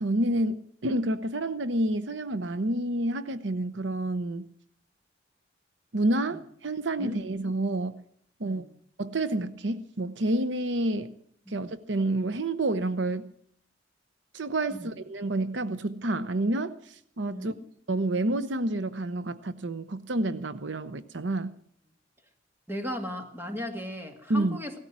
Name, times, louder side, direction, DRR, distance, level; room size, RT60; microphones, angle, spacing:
voice 1, 0.0-4.5 5.9-8.0 8.4-8.6 9.0-11.1 11.5-13.3 14.3-17.5 17.9-21.5 24.3-24.6, right 1 dB, 70° right, 0.8 m, -29 dB
voice 2, 22.7-24.8, left 1 dB, 10° right, 2.1 m, -36 dB
17.5 x 13.5 x 6.1 m
head